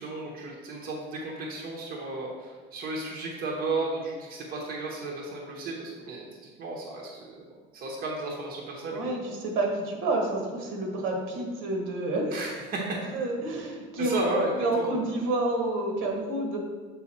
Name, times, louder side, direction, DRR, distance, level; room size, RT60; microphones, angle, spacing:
voice 1, 0.0-7.2 7.7-9.0 12.3-13.0 14.0-14.9, right 2 dB, 45° right, -2 dB, 1.1 m, -33 dB
voice 2, 8.9-12.4 13.1-14.2 14.6-16.6, right 2 dB, 80° right, 1 dB, 1.5 m, -29 dB
7.1 x 3.8 x 4.3 m, 1.4 s
cardioid pair, 150°, 21 cm